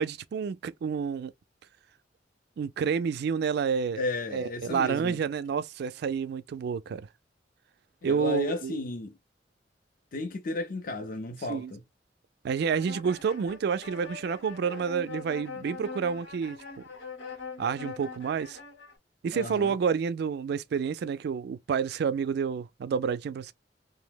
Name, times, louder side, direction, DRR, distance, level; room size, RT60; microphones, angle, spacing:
voice 1, 0.0-1.3 2.6-4.0 4.3-7.1 8.0-8.8 11.5-11.7 12.4-16.6 17.6-18.6 19.2-23.5, right 6 dB, 65° right, 0.3 m, -29 dB
voice 2, 4.0-5.2 8.0-9.1 10.1-11.8 19.3-19.7, left 3 dB, 50° left, 0.5 m, -33 dB
sound 1, 12.6-19.0, left 5 dB, 90° left, 0.9 m, -43 dB
2.8 x 2.0 x 3.3 m
head